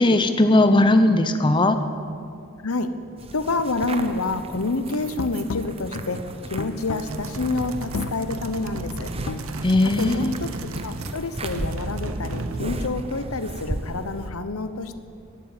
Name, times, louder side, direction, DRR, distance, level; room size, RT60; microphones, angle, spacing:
voice 1, 0.0-1.8 9.6-10.3, left 2 dB, 20° left, 8 dB, 0.6 m, -18 dB
voice 2, 2.6-2.9 3.3-6.2 6.5-9.1 9.8-10.5 10.8-15.0, left 3 dB, 80° left, 11 dB, 1.0 m, -28 dB
sound 1, 3.2-14.3, right 1 dB, 25° right, 0.8 m, -36 dB
sound 2, 5.0-10.3, left 4 dB, 65° left, 0.5 m, -35 dB
sound 3, 7.0-11.2 11.4-12.8, right 2 dB, 75° right, 0.9 m, -34 dB
12.5 x 12.0 x 9.0 m, 2.3 s
head